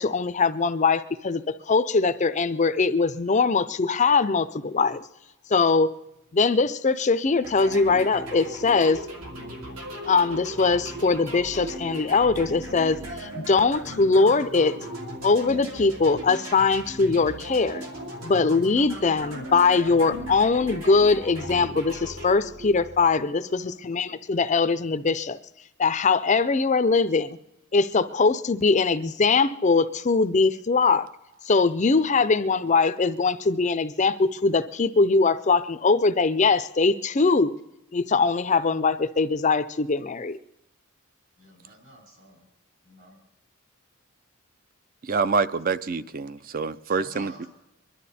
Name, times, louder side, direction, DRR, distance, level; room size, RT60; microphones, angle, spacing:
voice 1, 0.0-5.0 5.5-5.9 6.3-9.0 10.1-14.8 15.2-17.8 18.2-25.4 25.8-27.4 27.7-31.1 31.4-37.5 37.9-40.4, left 4 dB, 30° left, 0.5 m, -22 dB
sound 1, 7.4-23.3, right 1 dB, 75° right, 2.9 m, -37 dB
voice 2, 23.3-23.7 29.8-29.9 32.1-32.3 41.4-42.5 42.8-43.2 46.9-47.5, right 1 dB, 55° right, 3.8 m, -50 dB
voice 3, 45.1-47.5, right 4 dB, 40° right, 0.5 m, -26 dB
24.0 x 12.0 x 4.2 m
head